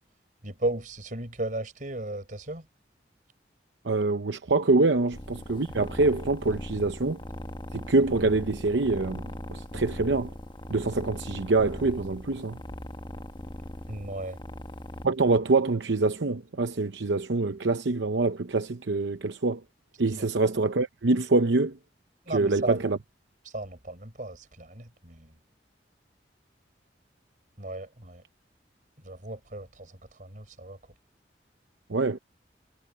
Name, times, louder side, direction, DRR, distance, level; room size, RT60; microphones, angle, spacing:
voice 1, 0.4-2.7 13.9-14.4 20.1-20.3 22.3-22.8 23.4-25.3 27.6-28.2 29.0-30.8, right 2 dB, 45° right, 4.8 m, -35 dB
voice 2, 3.8-7.2 7.7-10.3 10.7-12.6 15.0-19.6 20.0-21.8 22.3-23.0 31.9-32.2, right 3 dB, 80° right, 0.8 m, -25 dB
sound 1, 5.1-15.1, left 1 dB, 25° left, 1.4 m, -39 dB
head